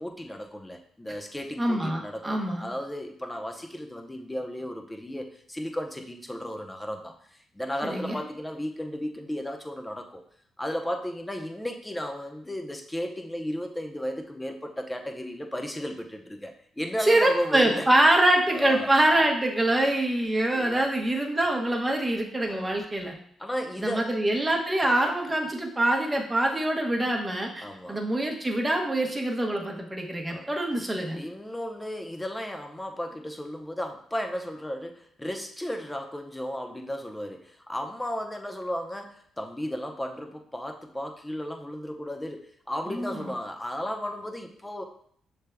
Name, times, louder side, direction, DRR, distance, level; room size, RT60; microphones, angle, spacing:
voice 1, 0.0-10.2 10.6-17.9 18.5-18.9 20.5-20.9 22.5-22.8 23.4-24.1 27.6-28.0 30.3-30.5 31.1-44.8, equal, 10° left, 4 dB, 0.7 m, -34 dB
voice 2, 1.6-2.7 7.8-8.2 17.0-23.1 23.8-31.2 42.9-43.3, right 1 dB, 15° right, 1 dB, 0.9 m, -25 dB
6.3 x 3.4 x 2.2 m, 0.64 s
supercardioid pair, 65°, 0 cm